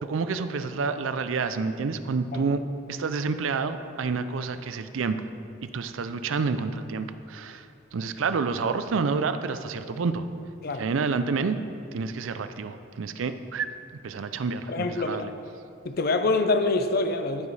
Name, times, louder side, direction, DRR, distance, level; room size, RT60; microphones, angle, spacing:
voice 1, 0.0-2.6 2.9-5.2 5.6-7.7 7.9-10.3 10.7-11.6 11.9-13.7 14.0-15.3, right 4 dB, 85° right, 10 dB, 0.5 m, -29 dB
voice 2, 14.7-15.3 15.8-17.5, left 3 dB, 50° left, 8 dB, 0.6 m, -25 dB
14.5 x 4.8 x 4.1 m, 2.5 s
head